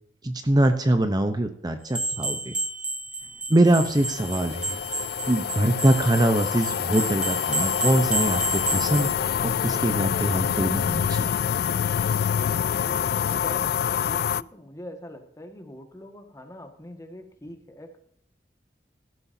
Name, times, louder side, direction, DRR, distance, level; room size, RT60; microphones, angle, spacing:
voice 1, 0.2-2.5 3.5-4.8 5.3-9.1 9.4-11.3, right 1 dB, 25° right, 7 dB, 0.8 m, -23 dB
sound 1, 1.9-9.1, right 2 dB, 5° right, 1.4 m, -31 dB
sound 2, 3.7-14.4, left 8 dB, 60° left, 0.3 m, -26 dB
voice 2, 12.7-18.0, equal, 20° left, 5 dB, 1.7 m, -43 dB
17.0 x 12.5 x 2.8 m, 0.67 s
head